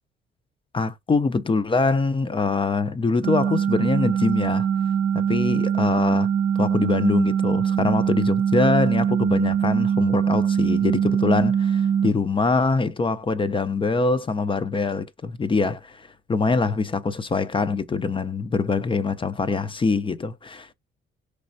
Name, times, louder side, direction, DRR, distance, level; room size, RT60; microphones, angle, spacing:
voice 1, 0.7-4.7 5.1-6.3 6.6-20.7, left 4 dB, 25° left, 0.5 m, -24 dB
sound 1, 3.2-12.1, right 8 dB, 60° right, 0.6 m, -22 dB
5.0 x 3.2 x 2.6 m
cardioid pair, 90°, 20 cm